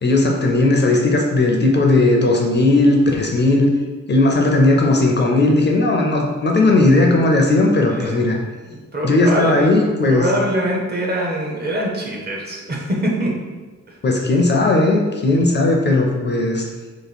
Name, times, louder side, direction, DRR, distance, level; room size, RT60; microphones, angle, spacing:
voice 1, 0.0-3.7 4.1-8.4 9.0-10.3 14.0-16.7, left 2 dB, 35° left, 1 dB, 0.4 m, -16 dB
voice 2, 7.9-8.4 8.7-13.3, right 1 dB, 35° right, -1 dB, 0.7 m, -24 dB
2.9 x 2.9 x 4.1 m, 1.3 s
wide cardioid pair, 160°, 30 cm